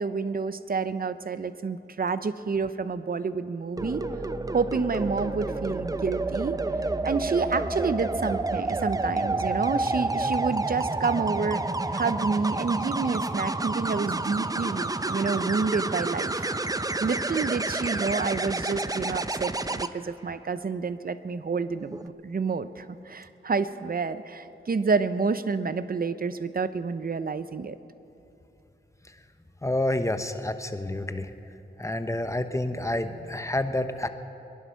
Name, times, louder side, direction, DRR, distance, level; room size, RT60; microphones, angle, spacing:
voice 1, 0.0-4.0 4.5-6.6 7.0-16.5 17.0-27.8, right 4 dB, 50° right, 13 dB, 0.7 m, -29 dB
sound 1, 3.8-19.9 21.8-22.1, right 2 dB, 20° right, 0.6 m, -29 dB
voice 2, 29.6-31.3 31.8-34.1, left 1 dB, 15° left, 9 dB, 1.0 m, -28 dB
22.0 x 11.0 x 5.7 m, 3.0 s
cardioid pair, 50°, 20 cm